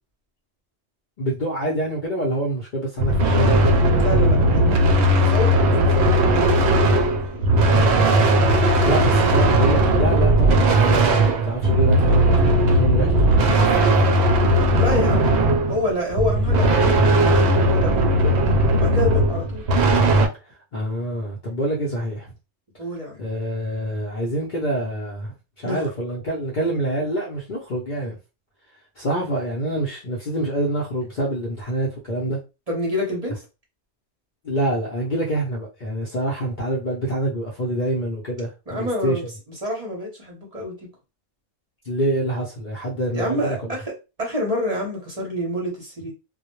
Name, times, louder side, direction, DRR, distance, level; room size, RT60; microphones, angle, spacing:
voice 1, 1.2-3.6 8.8-13.1 20.7-22.3 23.2-28.2 29.0-32.4 34.4-39.2 41.8-43.6, right 1 dB, 50° left, 0.7 m, -26 dB
sound 1, 3.0-20.3, right 1 dB, 65° right, 0.8 m, -17 dB
voice 2, 4.0-4.8 5.2-7.4 8.9-9.0 14.7-15.2 15.7-18.3 18.7-19.6 22.8-23.2 25.6-25.8 32.2-32.4 32.7-33.4 38.7-39.2 39.6-40.9 43.1-43.9 44.2-46.1, equal, 35° right, 0.8 m, -28 dB
2.2 x 2.1 x 3.0 m
omnidirectional pair, 1.3 m